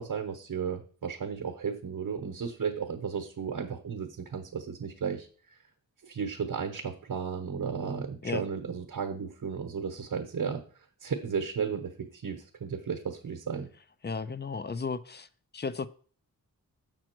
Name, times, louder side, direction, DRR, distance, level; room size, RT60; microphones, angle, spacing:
voice 1, 0.0-5.6 6.0-10.6 11.0-13.7, right 6 dB, 65° right, 1.0 m, -34 dB
voice 2, 14.0-15.3 15.5-15.9, left 5 dB, 30° left, 0.5 m, -34 dB
7.4 x 6.1 x 4.5 m
wide cardioid pair, 95°, 35 cm